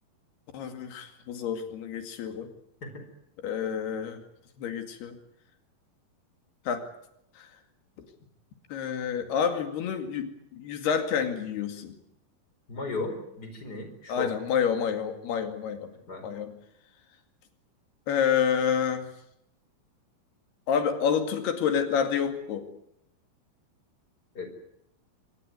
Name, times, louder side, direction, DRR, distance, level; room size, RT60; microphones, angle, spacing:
voice 1, 0.5-2.5 3.4-4.2 4.6-5.2 6.7-6.9 7.4-7.5 8.7-12.0 14.1-15.9 16.2-16.5 18.1-19.1 20.7-22.7, left 7 dB, 80° left, 7 dB, 4.3 m, -28 dB
voice 2, 12.7-14.3 16.1-16.2 24.3-24.5, left 3 dB, 25° left, 7 dB, 4.8 m, -35 dB
25.0 x 19.5 x 9.4 m, 0.77 s
omnidirectional pair, 4.5 m